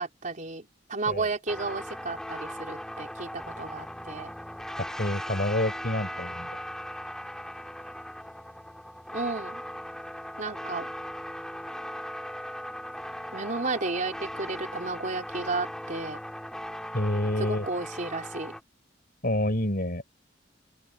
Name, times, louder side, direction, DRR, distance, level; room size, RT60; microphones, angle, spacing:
voice 1, 0.0-4.3 9.1-9.6 10.4-10.9 13.3-16.2 17.4-18.5, right 3 dB, 45° right, 4.2 m, -33 dB
sound 1, 1.5-18.6, equal, 5° left, 3.0 m, -38 dB
voice 2, 4.8-6.5 16.9-17.7 19.2-20.0, left 1 dB, 50° left, 5.7 m, -28 dB
open air
head